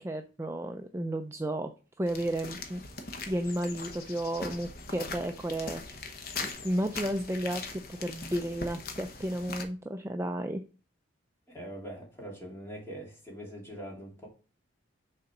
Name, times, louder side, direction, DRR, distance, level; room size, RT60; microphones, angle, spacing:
voice 1, 0.0-1.7 2.0-2.8 3.3-6.1 6.4-10.6, right 1 dB, 15° right, 0.3 m, -33 dB
sound 1, 2.1-9.6, left 3 dB, 50° left, 1.0 m, -41 dB
voice 2, 11.5-14.3, right 1 dB, 15° left, 2.5 m, -43 dB
6.5 x 4.0 x 5.8 m
head